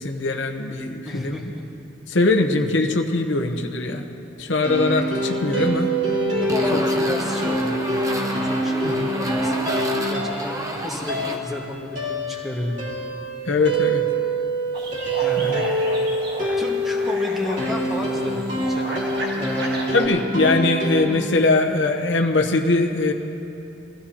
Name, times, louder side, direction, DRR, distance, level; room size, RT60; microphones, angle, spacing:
voice 1, 0.0-1.5 2.1-4.0 4.4-5.9 8.8-9.1 13.5-14.0 15.4-15.6 19.9-23.1, left 2 dB, 65° left, 3 dB, 0.9 m, -21 dB
voice 2, 1.0-1.6 6.3-12.8 15.2-15.6 16.6-19.0 19.3-19.8, left 1 dB, ahead, -3 dB, 1.6 m, -32 dB
sound 1, 4.6-21.0, right 1 dB, 40° right, 2.9 m, -25 dB
sound 2, 6.5-11.4, right 1 dB, 15° right, 0.9 m, -30 dB
sound 3, 14.7-20.1, right 1 dB, 55° right, 1.8 m, -33 dB
22.0 x 15.0 x 2.9 m, 2.8 s
head